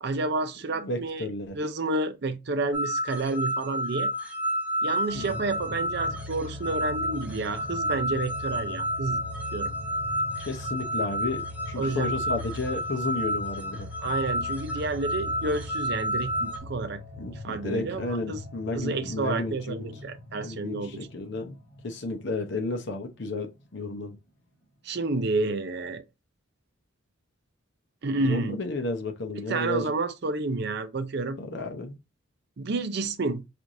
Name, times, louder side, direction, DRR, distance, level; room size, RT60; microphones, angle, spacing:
voice 1, 0.0-1.3 1.5-4.1 4.8-9.2 9.5-9.7 11.8-12.1 14.0-17.0 17.4-18.4 18.7-20.9 24.8-26.0 28.0-28.6 29.3-31.4 32.6-33.4, right 3 dB, 50° right, 0.5 m, -30 dB
voice 2, 0.7-1.6 5.1-5.4 10.4-13.9 17.2-19.8 20.4-21.5 21.8-24.2 28.2-29.9 31.4-32.0, left 2 dB, 55° left, 0.7 m, -32 dB
sound 1, 2.7-16.6, equal, 5° right, 0.7 m, -31 dB
sound 2, 5.1-22.6 23.0-23.1, left 1 dB, 40° left, 1.3 m, -41 dB
4.5 x 2.5 x 2.6 m
head